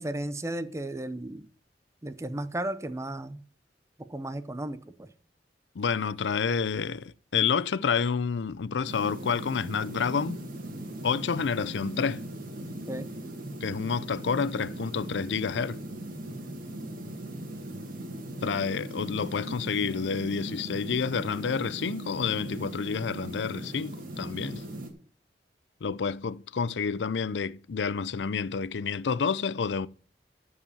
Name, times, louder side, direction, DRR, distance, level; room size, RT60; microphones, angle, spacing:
voice 1, 0.0-1.5 2.0-3.4 4.1-5.1 12.9-13.1, right 1 dB, 15° right, 0.7 m, -34 dB
voice 2, 5.8-10.4 11.0-12.2 13.6-15.8 18.4-24.6 25.8-29.9, left 6 dB, 85° left, 0.5 m, -29 dB
sound 1, 8.9-24.9, right 1 dB, 55° right, 2.0 m, -39 dB
13.5 x 4.9 x 7.1 m
head